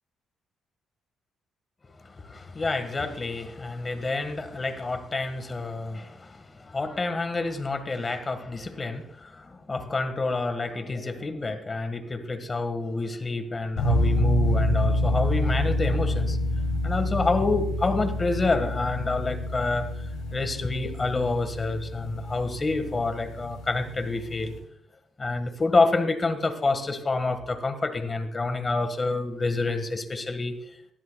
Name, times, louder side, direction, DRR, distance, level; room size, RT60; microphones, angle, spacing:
voice 1, 2.2-16.4 16.8-19.8 20.3-24.5 25.2-30.5, left 3 dB, 30° left, 9 dB, 1.6 m, -28 dB
sound 1, 13.8-24.6, left 1 dB, 90° left, 5.4 m, -27 dB
19.5 x 13.0 x 2.3 m, 0.74 s
cardioid pair, 90°, 0 cm